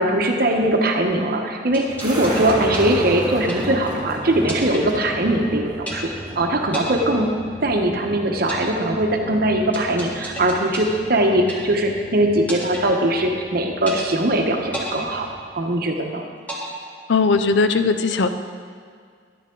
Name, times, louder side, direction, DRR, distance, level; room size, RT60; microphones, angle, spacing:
voice 1, 0.0-6.1 6.4-7.3 7.6-15.3 15.5-16.2, right 1 dB, 60° right, 3 dB, 1.0 m, -21 dB
sound 1, 1.7-4.0 4.5-5.5 5.9-6.4 6.7-8.0 8.5-12.0 12.5-13.5 13.9-14.4 14.7-16.0 16.5-17.5, equal, 10° left, 1.6 m, -34 dB
sound 2, 1.9-15.4, equal, 25° right, 1.8 m, -34 dB
voice 2, 17.1-18.3, left 4 dB, 80° left, 9 dB, 0.6 m, -18 dB
11.0 x 9.2 x 3.8 m, 2.1 s
head